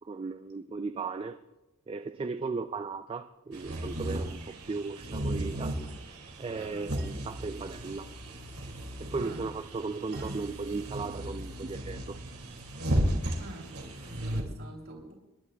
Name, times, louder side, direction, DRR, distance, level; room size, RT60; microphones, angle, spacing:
voice 1, 0.0-1.4 1.9-5.8 6.4-8.1 9.0-12.2, right 4 dB, 25° right, 0.3 m, -36 dB
sound 1, 3.5-14.4, right 1 dB, 90° right, 2.3 m, -35 dB
voice 2, 6.5-6.9 9.2-9.5 10.2-10.3 13.4-13.8 14.0-15.1, right 1 dB, 65° right, 2.9 m, -46 dB
27.0 x 11.0 x 2.3 m
head